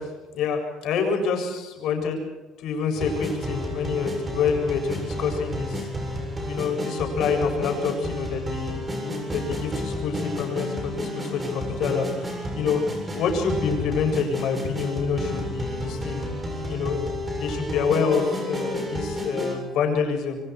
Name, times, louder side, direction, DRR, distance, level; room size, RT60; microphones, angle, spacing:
voice 1, 0.0-2.2 2.6-6.1 6.5-12.8 13.1-16.2 16.7-20.4, left 5 dB, 70° left, 2 dB, 7.6 m, -27 dB
sound 1, 2.9-19.6, equal, 20° right, 7.7 m, -31 dB
27.5 x 24.5 x 4.8 m, 1.1 s
cardioid pair, 120°, 0 cm